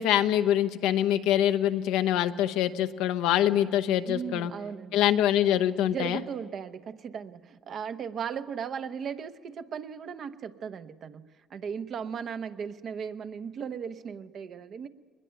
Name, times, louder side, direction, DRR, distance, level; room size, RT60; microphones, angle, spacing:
voice 1, 0.0-4.5 4.9-6.2, left 11 dB, 85° left, 10 dB, 0.9 m, -24 dB
voice 2, 4.1-5.0 5.8-14.9, right 7 dB, 55° right, 9 dB, 1.0 m, -37 dB
22.0 x 20.5 x 9.0 m, 1.5 s
cardioid pair, 90°, 0 cm